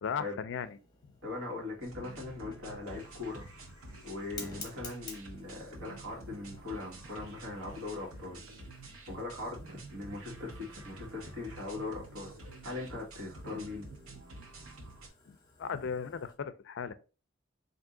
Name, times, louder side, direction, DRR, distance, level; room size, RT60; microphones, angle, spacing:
voice 1, 0.0-0.8 15.3-16.9, left 6 dB, 60° left, 0.4 m, -37 dB
Fire, 0.6-16.3, left 4 dB, 20° left, 0.9 m, -54 dB
voice 2, 1.2-3.5 4.0-8.4 9.1-13.9, left 2 dB, 60° right, 1.7 m, -40 dB
sound 1, 1.8-15.1, right 2 dB, 85° right, 0.9 m, -49 dB
3.5 x 2.6 x 3.7 m
head